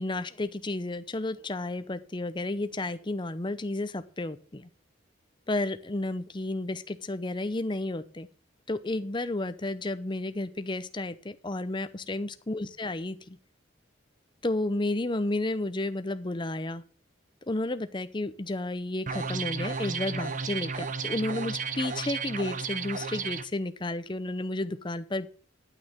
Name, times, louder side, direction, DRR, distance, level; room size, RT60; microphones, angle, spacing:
voice 1, 0.0-4.7 5.5-8.3 8.7-13.4 14.4-16.8 17.5-25.3, left 2 dB, 25° left, 12 dB, 0.7 m, -32 dB
sound 1, 19.1-23.4, right 5 dB, 40° right, 0.8 m, -33 dB
11.0 x 6.3 x 7.2 m, 0.43 s
head